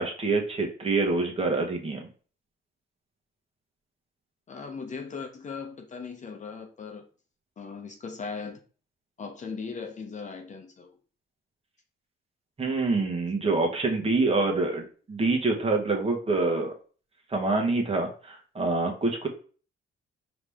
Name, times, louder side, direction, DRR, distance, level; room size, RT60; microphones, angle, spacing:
voice 1, 0.0-2.1 12.6-16.7 17.3-19.3, right 3 dB, 30° right, 1.3 m, -26 dB
voice 2, 4.5-7.0 7.6-8.6 9.2-10.9, left 5 dB, 40° left, 0.8 m, -38 dB
4.8 x 3.0 x 3.5 m
cardioid pair, 90°, 20 cm